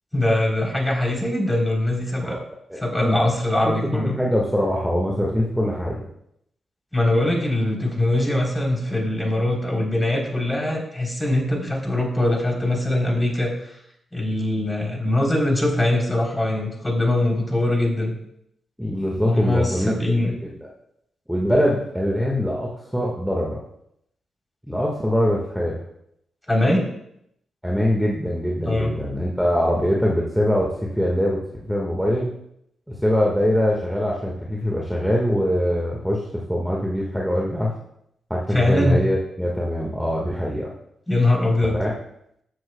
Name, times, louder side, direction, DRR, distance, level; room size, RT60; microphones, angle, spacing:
voice 1, 0.1-2.4 2.8-4.2 6.9-13.5 14.1-18.1 19.2-20.3 26.5-26.8 28.6-28.9 38.5-39.0 41.1-41.8, left 1 dB, 15° left, 0 dB, 3.7 m, -22 dB
voice 2, 2.7-3.3 3.6-6.1 18.8-19.9 20.2-20.7 21.3-23.6 24.7-25.8 27.6-32.3 33.0-37.7 38.3-40.7 41.7-41.9, equal, 5° right, -2 dB, 1.7 m, -23 dB
13.0 x 7.5 x 2.3 m, 0.75 s
hypercardioid pair, 45°, 0 cm